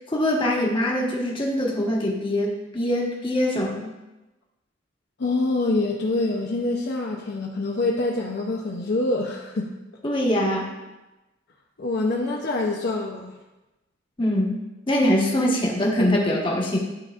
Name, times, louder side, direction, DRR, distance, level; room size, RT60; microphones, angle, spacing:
voice 1, 0.0-3.9 10.0-10.7 14.2-16.8, left 1 dB, 25° left, -2 dB, 1.2 m, -23 dB
voice 2, 5.2-9.7 11.8-13.3, left 2 dB, 60° left, 0 dB, 0.6 m, -25 dB
11.5 x 4.0 x 2.5 m, 1.0 s
head